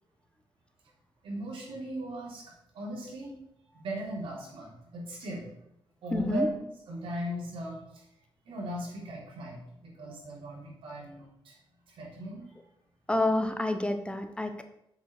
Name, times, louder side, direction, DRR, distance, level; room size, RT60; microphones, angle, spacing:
voice 1, 1.2-2.4 2.7-3.3 3.7-5.5 6.0-6.6 6.9-8.0 8.5-11.5 11.9-12.5, right 1 dB, 85° right, -4 dB, 3.7 m, -38 dB
voice 2, 6.1-6.5 13.1-14.6, left 2 dB, 10° left, 8 dB, 0.7 m, -28 dB
7.9 x 5.5 x 6.4 m, 0.79 s
wide cardioid pair, 135°, 9 cm